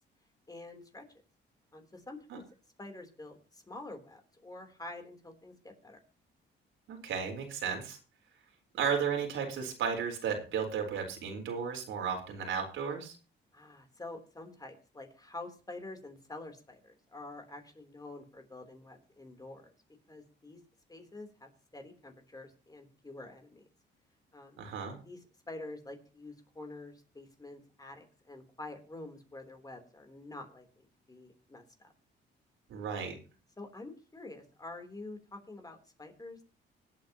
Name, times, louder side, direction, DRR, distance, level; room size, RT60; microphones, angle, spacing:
voice 1, 0.5-1.0 1.7-2.4 2.8-6.0 13.5-19.7 20.1-20.6 20.9-23.6 24.3-24.6 25.1-25.2 25.5-31.9 32.9-33.2 33.6-36.4, left 2 dB, 20° left, 5 dB, 3.5 m, -47 dB
voice 2, 6.9-8.0 8.7-13.2 24.6-25.0 32.7-33.2, right 6 dB, 80° right, 3 dB, 4.2 m, -34 dB
25.5 x 8.5 x 3.0 m, 0.34 s
cardioid pair, 90°, 20 cm